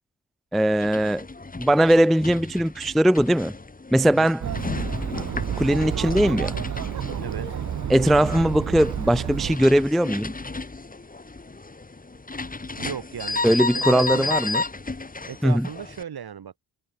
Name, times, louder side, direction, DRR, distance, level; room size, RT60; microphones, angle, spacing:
voice 1, 0.5-1.3 1.6-3.5 3.9-4.4 5.6-6.6 7.9-10.3 13.4-14.6 15.4-15.7, right 1 dB, ahead, 0.4 m, -20 dB
sound 1, 0.7-16.0, left 3 dB, 20° left, 1.7 m, -33 dB
Chatter, 4.4-9.6, right 9 dB, 45° right, 0.7 m, -30 dB
voice 2, 7.2-7.5 12.8-13.4 13.7-14.3 15.3-16.6, right 8 dB, 65° right, 2.9 m, -35 dB
cardioid pair, 55°, 40 cm